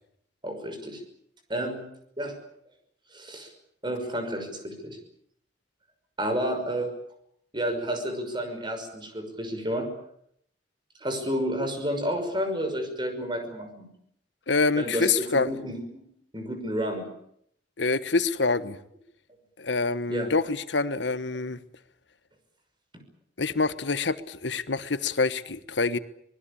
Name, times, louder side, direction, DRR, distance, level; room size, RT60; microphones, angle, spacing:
voice 1, 0.4-1.0 1.5-1.8 2.2-2.4 3.1-3.5 3.8-5.0 6.2-6.9 7.5-9.9 11.0-13.9 14.8-16.0 16.3-17.1 20.1-20.3, equal, 25° right, 6 dB, 5.9 m, -30 dB
voice 2, 14.5-15.5 17.8-18.8 19.6-21.6 23.4-26.0, left 4 dB, 75° left, 13 dB, 1.3 m, -26 dB
25.0 x 20.0 x 8.7 m, 0.72 s
head